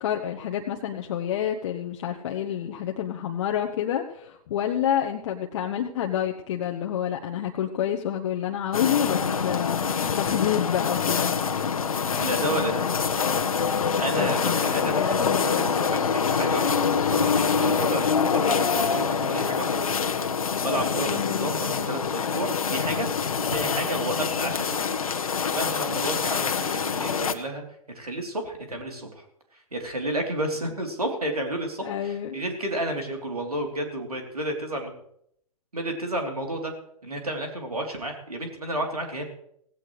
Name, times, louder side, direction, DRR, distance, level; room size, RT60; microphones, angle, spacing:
voice 1, 0.0-11.3 14.2-15.7 18.5-18.6 21.0-21.5 31.8-32.4, left 10 dB, 50° left, 2 dB, 1.1 m, -29 dB
sound 1, 8.7-27.3, left 6 dB, 70° left, 1.3 m, -25 dB
voice 2, 12.2-12.9 14.0-23.1 23.5-25.0 25.5-27.6 27.9-29.3 29.7-34.9 35.7-36.7 37.0-39.2, right 1 dB, 85° right, 2 dB, 3.5 m, -31 dB
17.0 x 16.0 x 3.3 m, 0.72 s
figure-of-eight pair, 115°, 19 cm